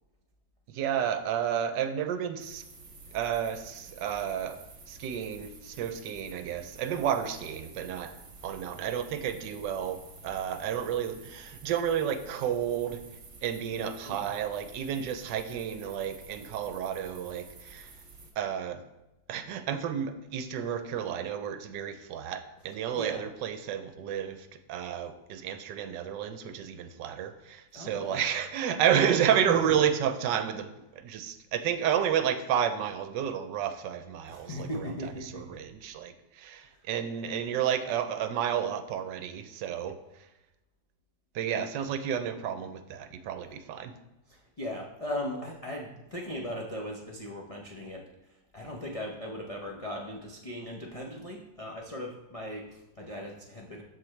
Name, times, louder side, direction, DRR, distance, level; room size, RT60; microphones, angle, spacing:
voice 1, 0.7-2.6 3.1-8.2 8.4-13.0 13.4-17.9 18.4-18.8 19.3-34.9 35.2-40.3 41.3-43.9, right 9 dB, 75° right, 9 dB, 1.2 m, -31 dB
sound 1, 2.4-18.3, right 3 dB, 45° right, 1.4 m, -50 dB
voice 2, 27.7-28.2 29.5-29.9 34.3-35.6 36.7-36.9 44.3-53.8, left 1 dB, 55° left, -2 dB, 0.4 m, -38 dB
13.0 x 4.4 x 3.2 m, 0.99 s
omnidirectional pair, 2.0 m